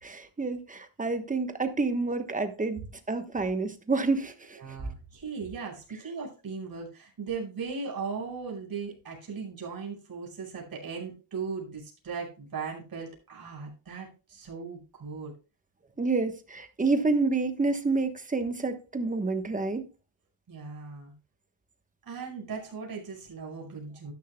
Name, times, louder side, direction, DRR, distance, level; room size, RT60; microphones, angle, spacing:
voice 1, 0.0-2.8 3.1-4.6 16.0-19.8, right 3 dB, 15° right, 1.1 m, -28 dB
voice 2, 4.6-15.3 20.5-21.1 22.0-24.1, right 5 dB, 45° right, 5.4 m, -38 dB
13.0 x 10.5 x 2.3 m
cardioid pair, 120°, 49 cm